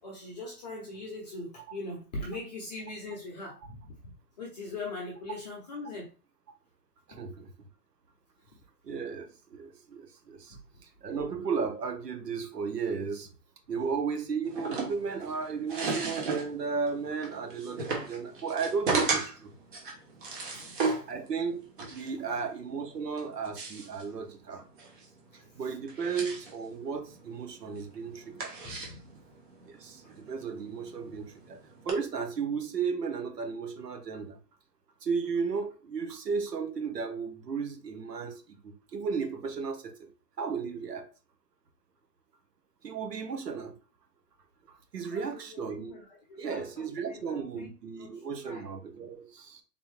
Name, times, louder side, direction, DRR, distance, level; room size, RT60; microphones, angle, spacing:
voice 1, 0.0-3.8 4.0-6.1 10.5-10.6 13.0-13.1 20.5-21.1 24.1-24.2 24.5-24.6 25.3-25.8 28.6-29.2 45.1-47.7 48.0-48.6, left 2 dB, 25° left, 0.7 m, -42 dB
voice 2, 7.1-7.5 8.8-10.6 11.0-13.3 13.7-19.5 20.7-21.6 21.9-24.6 25.6-28.5 29.7-31.6 31.8-34.4 35.0-39.9 40.4-41.0 42.8-43.7 44.7-45.9 46.4-49.6, right 5 dB, 80° right, 1.2 m, -34 dB
sound 1, 14.4-31.9, right 3 dB, 35° right, 0.9 m, -36 dB
3.6 x 2.7 x 3.2 m
hypercardioid pair, 155°, 47 cm